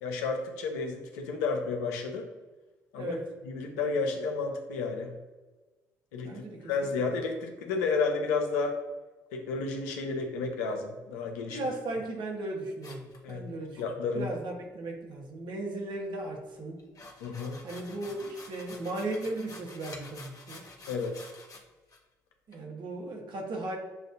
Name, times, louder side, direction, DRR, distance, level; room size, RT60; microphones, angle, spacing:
voice 1, 0.0-2.3 2.9-3.2 3.4-5.1 6.1-8.8 9.3-11.6 13.2-13.4 13.8-14.3 17.2-17.6 20.9-21.2, left 4 dB, 80° left, 3 dB, 0.6 m, -31 dB
voice 2, 6.2-7.1 11.5-13.8 14.1-16.8 17.6-20.6 22.5-23.8, right 2 dB, 60° right, 1 dB, 1.1 m, -36 dB
sound 1, 12.8-13.9 16.8-21.6 21.9-22.0 22.5-22.6, left 2 dB, 40° left, 1.1 m, -49 dB
6.8 x 2.5 x 2.6 m, 1.2 s
hypercardioid pair, 45°, 9 cm